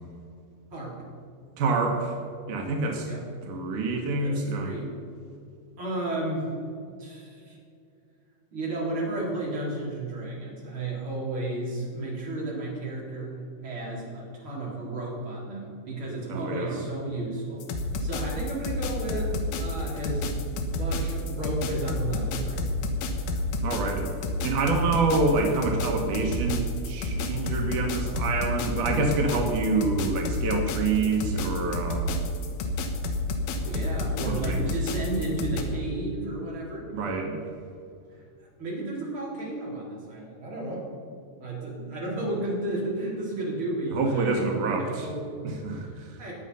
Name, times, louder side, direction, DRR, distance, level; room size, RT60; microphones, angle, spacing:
voice 1, 1.6-2.2 2.5-3.1 3.5-4.7 16.3-16.8 23.6-24.1 24.4-32.2 34.3-34.7 36.9-37.4 43.9-45.1 45.4-46.1, right 3 dB, 90° right, 2 dB, 1.7 m, -27 dB
voice 2, 4.2-4.9 5.8-6.5 7.0-7.6 8.5-13.4 13.6-20.3 20.7-22.7 23.6-23.7 33.6-36.9 38.1-38.2 38.6-41.1 41.4-45.3 45.8-46.3, right 2 dB, 30° right, -5 dB, 4.0 m, -33 dB
sound 1, 17.6-35.6, left 2 dB, 75° left, 3.4 m, -29 dB
21.0 x 7.7 x 5.6 m, 2.4 s
omnidirectional pair, 5.9 m